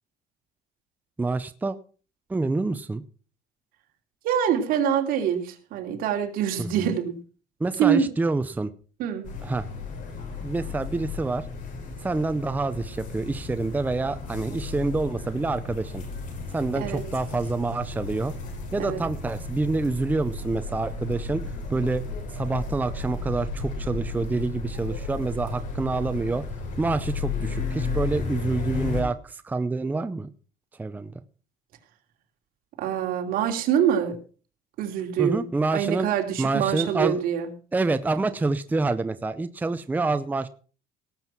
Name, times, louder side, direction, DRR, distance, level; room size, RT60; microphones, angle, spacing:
voice 1, 1.2-1.8 2.3-3.0 6.6-6.9 7.6-8.7 9.4-9.7 10.4-11.5 12.0-16.0 16.5-18.3 18.7-21.4 21.7-22.0 22.3-26.4 26.8-30.3 30.8-31.1 35.2-36.1 36.4-37.2 37.7-40.5, right 3 dB, 10° right, 12 dB, 0.6 m, -27 dB
voice 2, 4.2-7.2 7.8-8.1 9.0-9.3 16.7-17.0 18.8-19.0 32.8-34.2 34.8-35.5 35.7-37.5, right 9 dB, 70° right, 4 dB, 2.9 m, -25 dB
sound 1, 9.2-29.0, left 4 dB, 60° left, 5.8 m, -34 dB
18.0 x 7.6 x 5.9 m, 0.39 s
cardioid pair, 140°, 15 cm